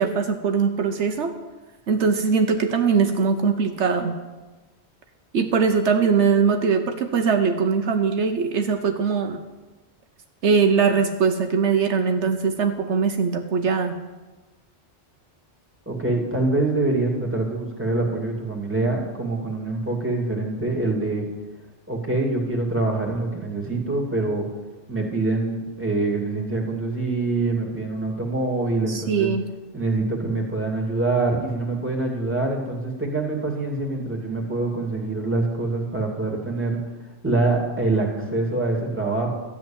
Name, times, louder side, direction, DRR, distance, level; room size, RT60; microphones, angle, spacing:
voice 1, 0.0-1.3 1.9-4.2 5.3-9.4 10.4-14.0 28.9-29.5, right 5 dB, 80° right, 6 dB, 1.2 m, -21 dB
voice 2, 15.9-21.3 21.9-24.4 24.9-29.3 29.7-36.8 37.2-39.3, right 2 dB, 10° right, -1 dB, 2.6 m, -25 dB
13.5 x 7.4 x 8.9 m, 1.2 s
omnidirectional pair, 1.2 m